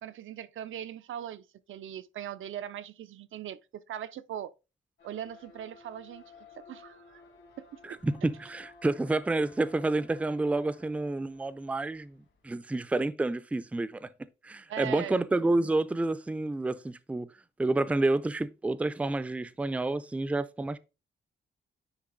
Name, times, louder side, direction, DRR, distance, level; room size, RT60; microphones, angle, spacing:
voice 1, 0.0-4.5 5.0-6.2 6.6-7.2 7.6-8.0 14.7-15.2, right 10 dB, 90° right, 0.5 m, -40 dB
sound 1, 5.0-12.5, left 4 dB, 80° left, 2.6 m, -56 dB
voice 2, 7.8-12.1 12.4-14.1 14.4-17.3 17.6-20.8, right 2 dB, 5° right, 0.3 m, -29 dB
9.7 x 3.4 x 3.9 m
wide cardioid pair, 155°, 20 cm